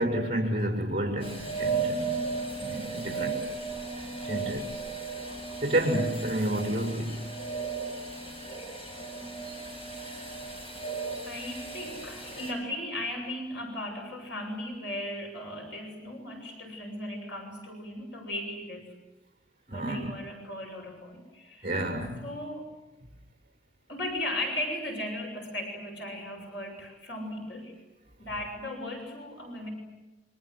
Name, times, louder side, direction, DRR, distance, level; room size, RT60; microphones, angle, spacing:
voice 1, 0.0-2.1 2.6-3.5 4.2-4.8 5.6-7.3 19.7-20.1 21.6-22.3, right 1 dB, 30° right, 6.2 m, -30 dB
sound 1, 1.2-12.5, right 4 dB, 30° left, 7.3 m, -35 dB
voice 2, 11.2-18.9 19.7-21.7 22.2-22.7 23.9-27.7 28.2-29.7, left 1 dB, 70° left, 6.8 m, -37 dB
29.0 x 25.5 x 7.9 m
head